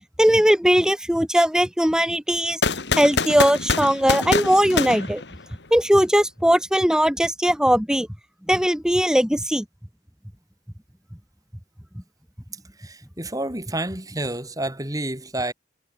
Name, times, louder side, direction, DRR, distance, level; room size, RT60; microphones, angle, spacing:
voice 1, 0.2-2.6 3.0-5.2 5.7-8.1 8.5-9.6, equal, 5° right, 1.1 m, -19 dB
sound 1, 2.6-5.8, left 4 dB, 65° left, 2.4 m, -25 dB
voice 2, 12.8-15.5, right 1 dB, 20° right, 4.7 m, -29 dB
head